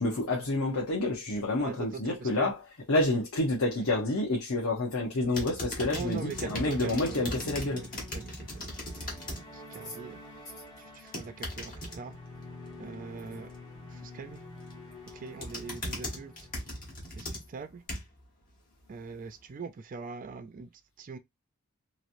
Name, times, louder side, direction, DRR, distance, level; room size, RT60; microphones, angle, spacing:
voice 1, 0.0-2.6 2.9-7.8, left 2 dB, 70° left, 0.8 m, -28 dB
voice 2, 1.6-2.5 5.9-7.4 7.7-7.9 8.1-8.7 9.5-10.2 11.0-12.2 12.8-13.5 14.0-14.4 15.1-16.3 17.1-17.8 18.9-20.7 21.0-21.2, right 5 dB, 40° right, 0.4 m, -41 dB
sound 1, 5.2-17.7, left 1 dB, 20° left, 1.1 m, -48 dB
sound 2, 5.3-9.4 9.8-10.2 10.9-12.0 14.4-14.7 15.1-18.2 18.8-18.9, left 1 dB, 40° left, 1.1 m, -38 dB
3.0 x 2.6 x 2.5 m
head